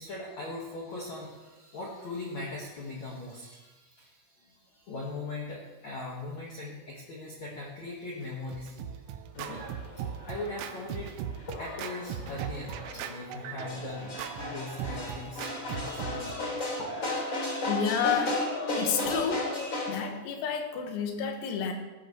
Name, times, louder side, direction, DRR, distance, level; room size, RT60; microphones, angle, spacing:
voice 1, 0.0-9.7 10.0-15.4 15.7-16.4, left 2 dB, 65° left, -3 dB, 1.8 m, -40 dB
Scratching (performance technique), 8.2-16.7, right 9 dB, 90° right, 3.6 m, -39 dB
sound 1, 9.3-19.9, left 2 dB, 30° left, 3.0 m, -35 dB
voice 2, 17.7-18.4 18.8-19.5 19.9-21.7, left 7 dB, 90° left, 3 dB, 4.3 m, -30 dB
17.5 x 13.5 x 3.2 m, 1.2 s
omnidirectional pair, 6.0 m